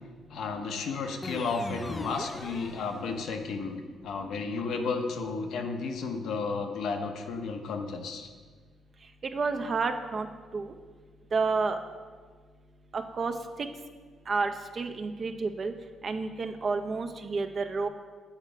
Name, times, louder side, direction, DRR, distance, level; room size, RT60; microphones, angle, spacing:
voice 1, 0.3-8.3, left 4 dB, 75° left, 5 dB, 0.7 m, -33 dB
sound 1, 1.2-3.5, left 2 dB, 20° left, 0.3 m, -40 dB
voice 2, 9.3-10.3 10.5-10.7 11.3-11.8 12.9-13.3 13.6-13.7 14.3-15.7 16.0-17.9, right 4 dB, 45° right, 7 dB, 0.5 m, -30 dB
7.3 x 4.4 x 5.0 m, 1.5 s
cardioid pair, 90°, 0 cm